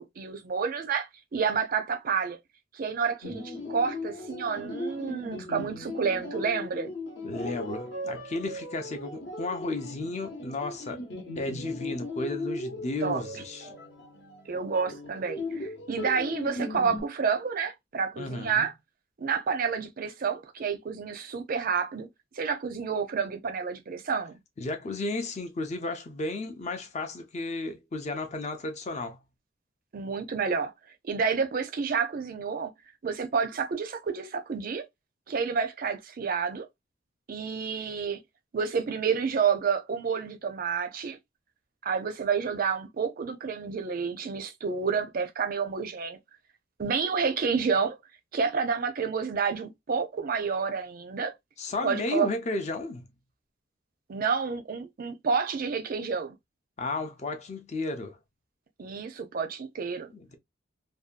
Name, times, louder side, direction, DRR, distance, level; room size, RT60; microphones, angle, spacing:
voice 1, 0.0-2.4 2.7-6.9 13.0-13.2 14.5-18.7 19.2-22.1 22.4-24.4 29.9-30.7 31.0-32.7 33.0-34.8 35.3-36.7 37.3-38.2 38.5-41.2 41.8-46.2 46.8-48.0 48.3-51.3 51.8-52.3 54.1-56.3 58.8-60.1, right 5 dB, 45° right, 0.4 m, -29 dB
sound 1, 3.2-17.0, left 2 dB, 60° left, 0.8 m, -38 dB
voice 2, 7.2-11.0 11.4-13.7 18.2-18.7 24.6-29.2 51.6-53.1 56.8-58.2 60.1-60.4, left 2 dB, 35° left, 0.5 m, -33 dB
2.6 x 2.2 x 2.4 m
head